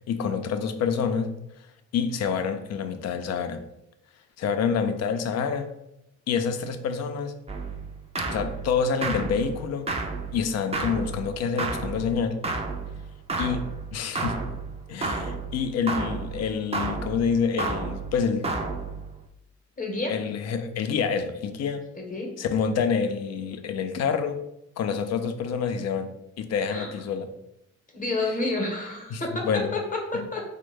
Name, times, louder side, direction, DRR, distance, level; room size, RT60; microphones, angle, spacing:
voice 1, 0.1-1.3 1.9-3.6 4.4-5.7 6.3-7.3 8.3-9.9 10.3-12.4 13.4-14.4 14.9-18.5 20.1-21.8 22.4-24.4 24.8-27.3 29.1-29.7 30.1-30.3, left 6 dB, 60° left, 8 dB, 0.4 m, -27 dB
sound 1, 7.5-19.2, right 3 dB, 20° right, 0.4 m, -32 dB
voice 2, 19.8-20.1 21.9-22.3 26.7-26.9 27.9-30.4, left 2 dB, 25° left, 0 dB, 0.7 m, -29 dB
3.1 x 2.1 x 3.2 m, 0.84 s
cardioid pair, 90°, 30 cm